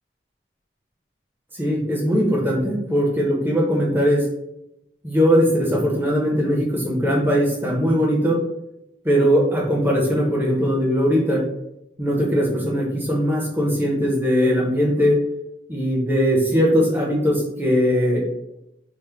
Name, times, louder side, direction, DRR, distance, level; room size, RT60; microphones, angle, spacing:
voice 1, 1.5-4.3 5.0-8.4 9.0-11.5 12.0-15.2 15.7-18.2, equal, 10° right, -3 dB, 0.7 m, -20 dB
3.4 x 2.0 x 3.4 m, 0.82 s
head